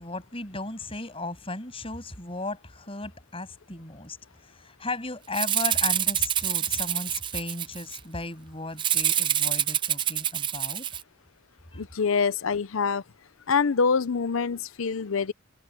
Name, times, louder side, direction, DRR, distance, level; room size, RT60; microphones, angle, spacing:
voice 1, 0.0-10.9 11.7-11.8, left 2 dB, 25° left, 7.4 m, -36 dB
Rattle (instrument), 5.3-8.0 8.8-11.0, right 10 dB, 20° right, 0.4 m, -26 dB
voice 2, 11.7-13.0 13.5-15.3, left 5 dB, 70° left, 0.6 m, -25 dB
head